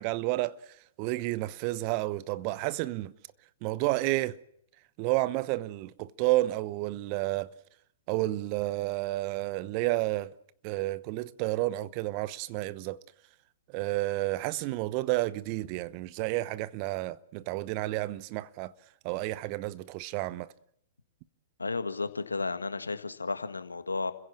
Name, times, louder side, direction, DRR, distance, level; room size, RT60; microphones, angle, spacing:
voice 1, 0.0-3.1 3.6-4.4 5.0-7.5 8.1-10.3 10.6-13.0 13.7-18.7 19.0-20.5, right 18 dB, 40° right, 0.9 m, -31 dB
voice 2, 21.6-24.1, left 3 dB, 85° left, 1.7 m, -33 dB
29.5 x 16.0 x 7.5 m
figure-of-eight pair, 110°, 0 cm